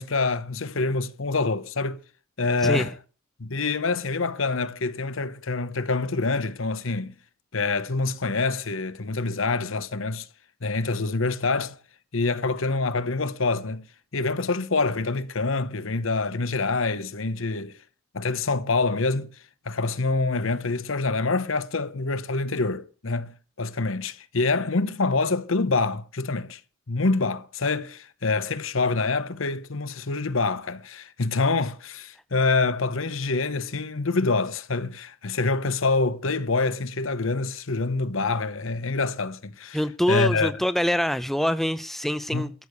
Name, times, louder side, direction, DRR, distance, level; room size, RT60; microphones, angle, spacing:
voice 1, 0.0-2.0 2.4-2.9 3.4-7.1 7.5-10.3 10.6-11.8 12.1-13.9 14.1-17.7 18.1-19.3 19.7-26.6 26.9-39.8 40.1-40.5 42.3-42.5, left 3 dB, 75° left, 1.0 m, -26 dB
voice 2, 39.7-42.5, equal, ahead, 0.5 m, -25 dB
14.0 x 6.6 x 8.1 m
head